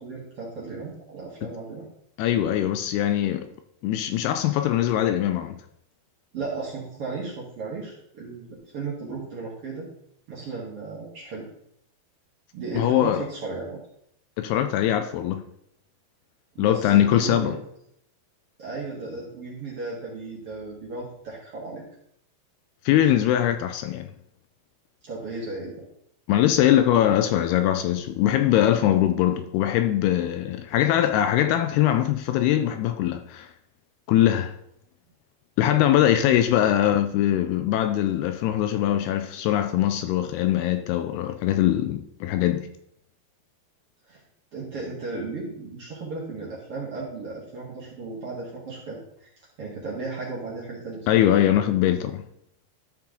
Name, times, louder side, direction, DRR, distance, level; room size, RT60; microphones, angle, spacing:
voice 1, 0.0-1.9 6.3-9.9 10.3-11.5 12.5-13.8 16.5-17.6 18.6-21.8 25.0-25.9 36.1-36.3 44.1-44.2 44.5-49.3 49.6-51.2, right 3 dB, 50° right, 1.9 m, -35 dB
voice 2, 2.2-3.5 3.8-5.6 12.8-13.2 14.4-15.4 16.6-17.6 22.9-24.1 26.3-33.5 34.1-34.5 35.6-42.7 51.1-52.2, left 12 dB, 80° left, 2.4 m, -22 dB
13.0 x 4.5 x 3.7 m
omnidirectional pair, 4.8 m